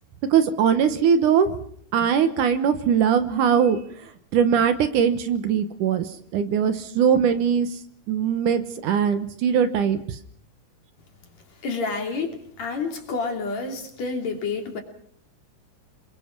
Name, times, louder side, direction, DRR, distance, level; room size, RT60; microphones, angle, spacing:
voice 1, 0.3-1.5 1.9-3.8 4.3-6.1 6.3-7.7 8.1-10.0, right 7 dB, 70° right, 10 dB, 2.5 m, -20 dB
voice 2, 11.6-14.8, left 4 dB, 50° left, 3 dB, 4.1 m, -29 dB
27.0 x 22.0 x 6.0 m, 0.63 s
omnidirectional pair, 4.0 m